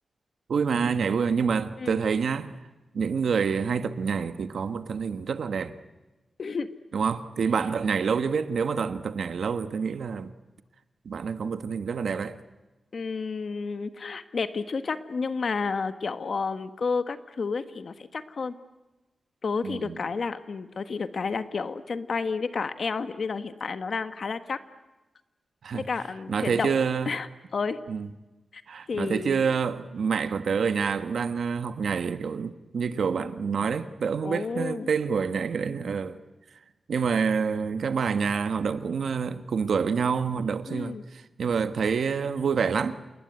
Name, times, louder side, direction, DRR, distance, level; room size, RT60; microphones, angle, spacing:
voice 1, 0.5-2.6 2.9-5.8 6.9-10.3 11.0-12.4 19.6-20.0 25.6-25.9 26.3-27.1 27.9-28.1 28.7-36.2 36.9-43.0, right 6 dB, 85° right, 1.3 m, -27 dB
voice 2, 6.4-6.7 12.9-18.5 19.4-24.6 25.7-26.7 27.1-27.8 28.5-28.6 28.9-29.4 34.2-34.9 40.7-41.0, left 4 dB, 55° left, 1.4 m, -31 dB
28.5 x 20.5 x 9.5 m
wide cardioid pair, 140°, 0 cm